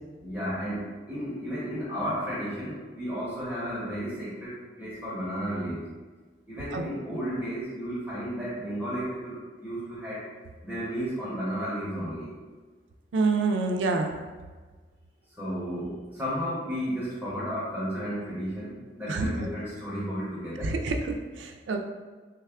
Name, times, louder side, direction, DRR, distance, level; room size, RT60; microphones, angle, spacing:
voice 1, 0.2-5.8 6.5-10.2 10.6-12.3 15.3-20.7, equal, 10° right, -10 dB, 0.8 m, -33 dB
voice 2, 13.1-14.1 19.1-19.5 20.6-21.8, right 3 dB, 90° right, 5 dB, 0.4 m, -27 dB
3.3 x 2.2 x 3.5 m, 1.4 s
head